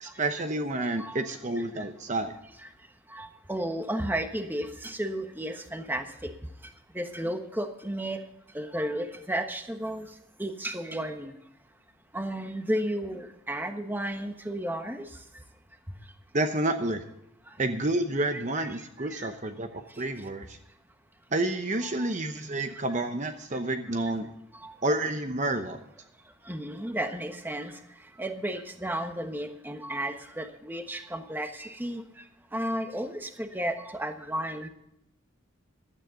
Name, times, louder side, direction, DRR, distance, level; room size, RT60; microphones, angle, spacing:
voice 1, 0.0-2.3 16.3-17.0 17.6-20.6 21.3-24.3 24.8-25.8, right 2 dB, 35° right, 7 dB, 0.9 m, -29 dB
voice 2, 1.6-1.9 3.1-6.3 6.6-8.2 8.5-10.1 10.4-11.3 12.1-15.1 18.3-18.7 19.0-19.3 21.8-22.1 24.6-24.7 26.5-27.7 28.2-32.0 32.5-34.7, right 1 dB, 10° right, 6 dB, 1.2 m, -33 dB
15.5 x 12.5 x 3.8 m, 0.80 s
head